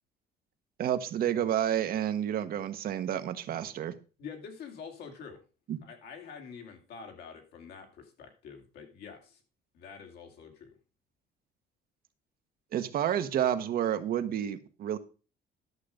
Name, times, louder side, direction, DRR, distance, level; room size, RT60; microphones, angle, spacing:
voice 1, 0.8-3.9 5.7-5.8 12.7-15.0, right 10 dB, 60° right, 10 dB, 1.1 m, -30 dB
voice 2, 4.2-5.4 5.8-9.4 9.7-10.7, left 6 dB, 75° left, 4 dB, 2.7 m, -46 dB
11.0 x 6.6 x 5.0 m, 0.35 s
cardioid pair, 110°, 17 cm